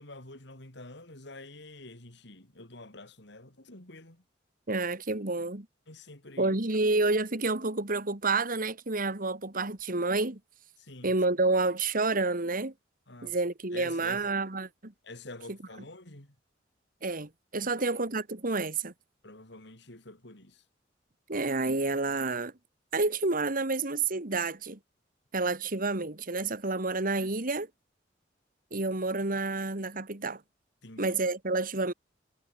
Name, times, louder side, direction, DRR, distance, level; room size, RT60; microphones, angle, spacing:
voice 1, 0.0-4.2 5.9-6.5 10.8-11.2 13.1-13.4 13.7-14.3 15.0-16.3 17.7-17.8 19.2-20.6 30.8-31.2, left 2 dB, 65° left, 4.8 m, -47 dB
voice 2, 4.7-5.7 6.4-10.4 11.0-12.7 13.2-14.9 17.0-18.9 21.3-22.5 22.9-24.8 25.3-27.7 28.7-30.4 31.0-31.9, right 3 dB, 50° right, 2.4 m, -29 dB
head